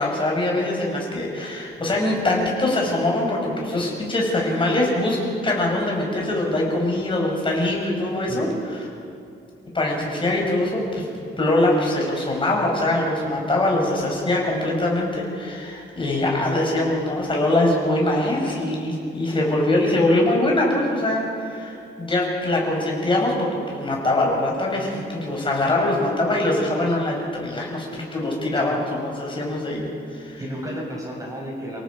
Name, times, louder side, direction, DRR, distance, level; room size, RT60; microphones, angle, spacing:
voice 1, 0.0-8.5 9.7-11.1 11.4-30.4, left 1 dB, 25° left, -2 dB, 5.3 m, -23 dB
voice 2, 30.4-31.8, equal, 15° right, -2 dB, 6.5 m, -32 dB
29.5 x 18.0 x 5.3 m, 2.6 s
wide cardioid pair, 145°, 19 cm